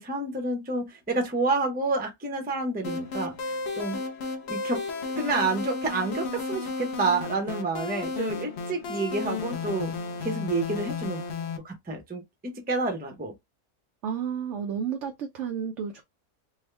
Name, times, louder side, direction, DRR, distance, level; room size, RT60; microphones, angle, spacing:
voice 1, 0.0-4.0 4.5-4.8 5.2-9.9 10.2-11.2 11.6-13.3, right 3 dB, 10° right, 0.5 m, -29 dB
sound 1, 2.8-11.6, left 4 dB, 55° left, 0.9 m, -33 dB
voice 2, 14.0-16.0, right 7 dB, 65° right, 0.8 m, -31 dB
3.5 x 2.1 x 3.2 m
omnidirectional pair, 1.5 m